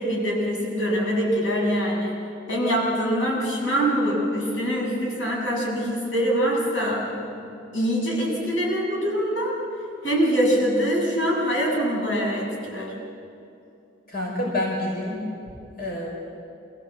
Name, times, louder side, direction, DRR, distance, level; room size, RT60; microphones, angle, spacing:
voice 1, 0.0-2.2 2.5-7.1 7.4-9.5 10.0-12.9, equal, 90° left, -3 dB, 7.3 m, -24 dB
voice 2, 14.1-15.2 15.8-16.1, left 1 dB, 55° left, -3 dB, 5.7 m, -27 dB
27.5 x 16.5 x 8.1 m, 2.6 s
head